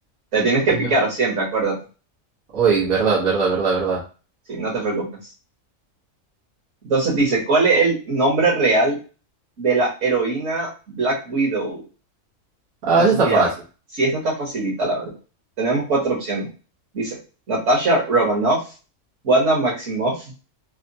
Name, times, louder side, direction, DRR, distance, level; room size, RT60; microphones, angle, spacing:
voice 1, 0.3-1.8 4.5-5.1 6.8-9.0 9.6-11.8 13.2-13.5 13.9-15.1 15.6-16.5 16.9-17.2 17.5-18.6 19.2-20.1, right 3 dB, 65° right, -3 dB, 1.5 m, -20 dB
voice 2, 2.5-4.0 12.8-13.5, right 4 dB, 90° right, -7 dB, 1.5 m, -19 dB
3.5 x 2.2 x 2.7 m, 0.34 s
omnidirectional pair, 1.4 m